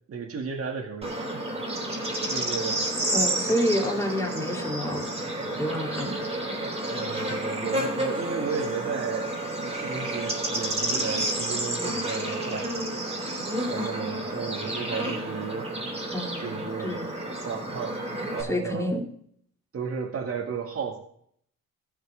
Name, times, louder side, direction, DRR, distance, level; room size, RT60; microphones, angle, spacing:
voice 1, 0.1-1.3 2.3-2.9 3.5-3.6 6.9-13.0 13.7-15.7 16.4-17.1 17.4-18.0 18.3-18.9 19.7-21.0, right 6 dB, 50° right, 1 dB, 2.1 m, -34 dB
Bird / Insect, 1.0-18.4, right 1 dB, 20° right, 3.3 m, -30 dB
voice 2, 3.1-5.0 5.6-6.2 16.1-17.1 18.4-19.1, left 1 dB, 10° left, 0 dB, 2.7 m, -28 dB
15.0 x 6.5 x 3.3 m, 0.64 s
cardioid pair, 90°, 30 cm